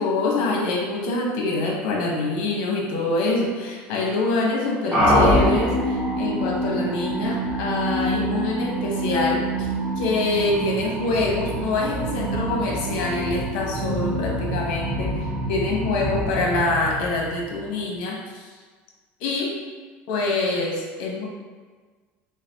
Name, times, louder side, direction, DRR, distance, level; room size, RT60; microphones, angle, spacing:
voice 1, 0.0-9.7 10.0-18.5 19.2-19.6 20.1-21.3, left 2 dB, 75° left, -2 dB, 1.0 m, -25 dB
sound 1, 4.9-17.8, equal, 10° right, 1.2 m, -25 dB
3.9 x 3.3 x 2.8 m, 1.5 s
cardioid pair, 135°, 5 cm